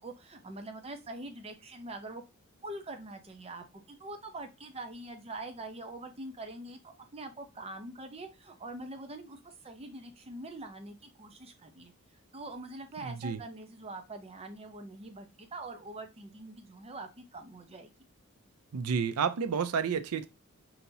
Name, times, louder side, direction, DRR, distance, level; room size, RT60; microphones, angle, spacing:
voice 1, 0.0-2.2 2.6-11.9 12.3-17.9, right 2 dB, 25° right, 0.7 m, -44 dB
voice 2, 13.0-13.4 18.7-20.3, right 6 dB, 80° right, 0.5 m, -30 dB
5.4 x 2.8 x 2.7 m
head